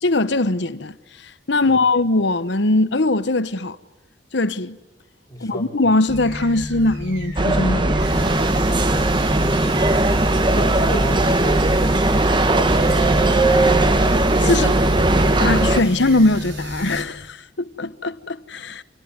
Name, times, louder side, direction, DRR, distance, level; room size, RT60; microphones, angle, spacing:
voice 1, 0.0-1.0 1.2-3.8 4.3-4.8 5.4-7.9 14.4-14.8 15.4-18.8, left 2 dB, 65° left, 1.0 m, -21 dB
voice 2, 5.3-5.7 10.5-11.8 12.5-13.6, equal, 20° left, 4.5 m, -32 dB
sound 1, 6.1-17.0, equal, 65° right, 6.4 m, -31 dB
sound 2, 7.4-15.8, right 2 dB, 25° right, 1.0 m, -18 dB
26.5 x 19.0 x 9.6 m
head